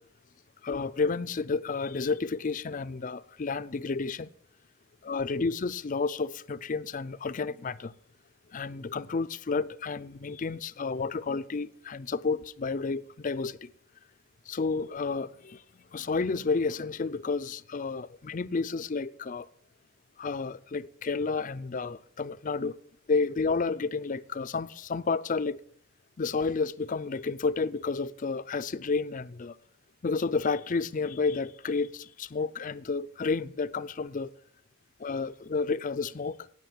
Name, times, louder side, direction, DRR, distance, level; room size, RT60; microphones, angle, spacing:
voice 1, 0.6-4.3 5.0-7.9 8.5-13.7 14.5-15.6 15.9-19.5 20.2-22.8 23.1-25.6 26.2-29.6 30.0-34.3 35.0-36.4, left 4 dB, 35° left, 0.4 m, -31 dB
18.0 x 6.5 x 7.2 m
head